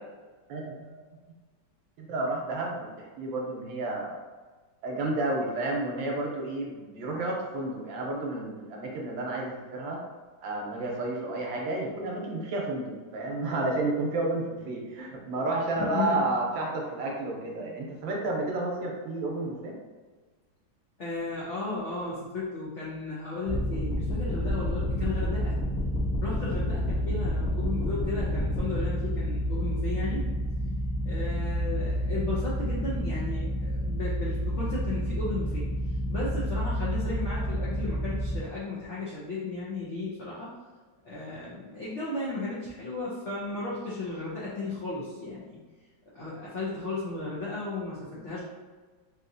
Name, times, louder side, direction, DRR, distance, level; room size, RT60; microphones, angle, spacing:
voice 1, 0.5-0.9 2.0-4.1 4.8-10.0 10.4-19.7, right 2 dB, 75° right, -1 dB, 1.4 m, -31 dB
voice 2, 15.7-16.3 21.0-25.5 26.2-30.2 31.0-40.5 41.0-45.6 46.1-48.4, left 3 dB, 90° left, -7 dB, 0.6 m, -35 dB
sound 1, 23.5-38.4, equal, 60° left, 1.0 m, -29 dB
3.6 x 2.8 x 2.6 m, 1.4 s
omnidirectional pair, 2.2 m